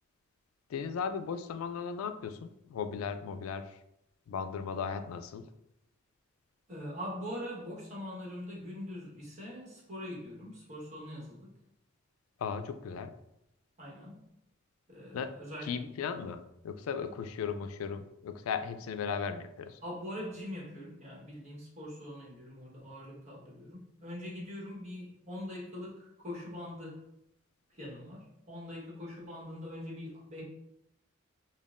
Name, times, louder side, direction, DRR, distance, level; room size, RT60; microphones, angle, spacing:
voice 1, 0.7-3.7 4.3-5.5 12.4-13.1 15.1-15.3 15.6-19.8, left 6 dB, 85° left, 10 dB, 0.3 m, -36 dB
voice 2, 6.7-11.5 13.8-14.2 14.9-15.7 19.8-27.0 27.7-30.4, left 1 dB, 35° right, -5 dB, 1.2 m, -43 dB
5.2 x 2.3 x 2.5 m, 0.82 s
head